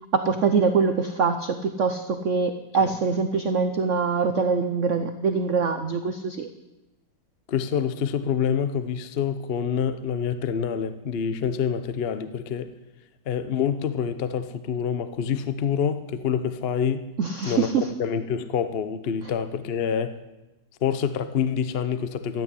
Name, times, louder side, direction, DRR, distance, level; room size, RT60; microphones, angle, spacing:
voice 1, 0.1-6.5 17.2-17.9, right 5 dB, 80° right, 0.6 m, -24 dB
voice 2, 7.5-12.7 13.3-17.0 17.4-20.2 20.8-22.4, left 7 dB, 70° left, 0.5 m, -27 dB
13.5 x 9.0 x 9.7 m
omnidirectional pair, 2.3 m